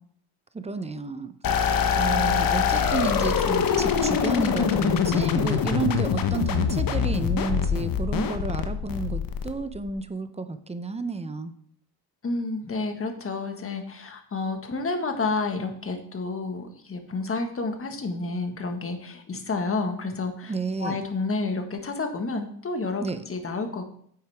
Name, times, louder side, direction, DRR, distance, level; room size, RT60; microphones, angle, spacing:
voice 1, 0.5-1.3 2.0-11.5 20.5-21.0 23.0-23.2, right 4 dB, 15° right, 11 dB, 0.7 m, -31 dB
sound 1, 1.4-9.9, left 7 dB, 55° left, 1.1 m, -24 dB
voice 2, 12.2-20.5 20.8-23.8, left 3 dB, 35° left, 5 dB, 1.5 m, -30 dB
9.7 x 7.9 x 3.5 m, 0.63 s
cardioid pair, 105°, 40 cm